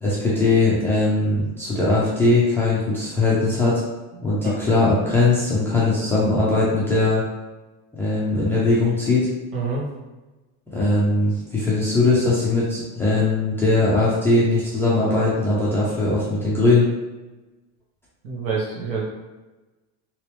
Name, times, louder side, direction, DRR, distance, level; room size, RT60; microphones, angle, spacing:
voice 1, 0.0-3.8 4.2-7.2 7.9-9.3 10.7-16.9, left 2 dB, 5° left, -8 dB, 0.3 m, -20 dB
voice 2, 4.1-4.5 9.5-9.8 18.2-19.0, right 4 dB, 70° right, -4 dB, 1.3 m, -27 dB
3.2 x 2.9 x 3.0 m, 1.1 s
cardioid pair, 165°, 37 cm